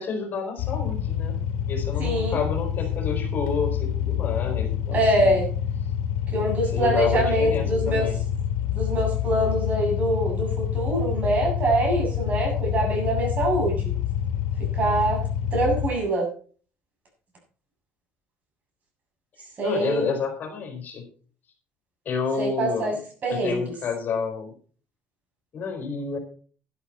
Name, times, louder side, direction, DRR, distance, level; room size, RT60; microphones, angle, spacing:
voice 1, 0.0-1.3 1.7-5.3 6.6-8.2 19.6-21.1 22.0-23.0 23.3-24.5 25.5-26.2, left 5 dB, 45° left, 4 dB, 4.7 m, -29 dB
sound 1, 0.6-15.9, left 9 dB, 90° left, 1.8 m, -27 dB
voice 2, 2.0-2.4 4.9-5.5 6.3-8.1 8.7-13.9 14.7-15.2 15.5-16.3 19.6-20.1 22.4-22.9 23.2-23.6, right 1 dB, 40° right, 0 dB, 7.4 m, -24 dB
12.5 x 11.5 x 4.4 m, 0.42 s
cardioid pair, 120°, 4 cm